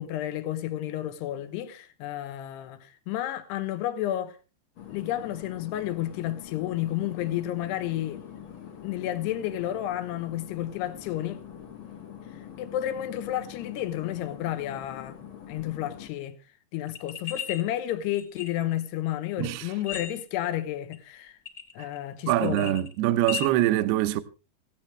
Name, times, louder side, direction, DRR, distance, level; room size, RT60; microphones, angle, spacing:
voice 1, 0.0-4.4 4.9-8.2 8.8-11.4 12.6-15.2 15.5-16.4 16.7-21.4 21.8-22.8, left 13 dB, 75° left, 3.1 m, -31 dB
sound 1, 4.8-16.1, left 9 dB, 60° left, 1.4 m, -44 dB
sound 2, 16.9-17.6 18.1-18.8 19.7-20.5 20.9-21.0 21.4-22.0 22.3-23.5, left 11 dB, 10° left, 0.9 m, -36 dB
voice 2, 19.4-19.7 21.8-21.9 22.3-24.2, right 14 dB, 75° right, 2.7 m, -24 dB
18.0 x 15.5 x 3.2 m
omnidirectional pair, 5.1 m